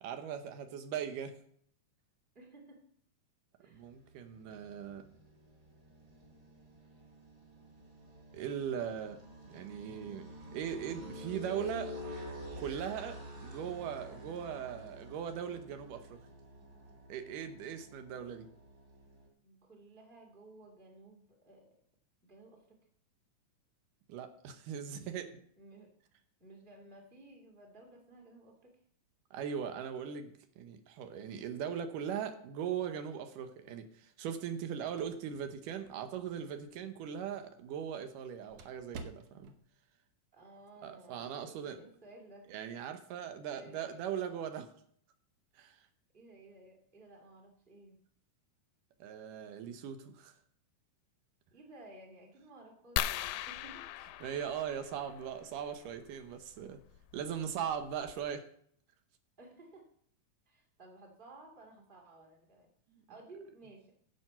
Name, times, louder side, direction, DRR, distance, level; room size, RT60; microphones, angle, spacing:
voice 1, 0.0-1.3 3.7-5.1 8.3-9.2 9.5-11.9 12.6-16.2 17.1-18.5 24.1-25.4 29.3-39.5 40.8-41.8 42.5-44.7 45.6-45.8 49.0-50.3 54.2-56.8 57.1-58.5 62.9-63.0, right 8 dB, 85° right, 8 dB, 2.5 m, -39 dB
voice 2, 2.3-2.8 3.6-3.8 19.4-21.8 22.2-22.8 25.6-25.9 26.4-28.8 40.3-42.5 43.5-44.0 46.1-48.0 51.5-53.9 59.4-59.9 60.5-62.7 63.1-64.0, right 2 dB, 15° right, 1 dB, 2.2 m, -55 dB
sound 1, 3.7-19.3, equal, 35° right, 3.4 m, -49 dB
sound 2, 34.4-39.7, right 3 dB, 70° right, 1.3 m, -54 dB
sound 3, 53.0-55.3 56.9-57.1 57.7-57.8 58.1-58.3, left 11 dB, 80° left, 2.0 m, -38 dB
10.5 x 7.7 x 5.7 m, 0.62 s
omnidirectional pair, 3.6 m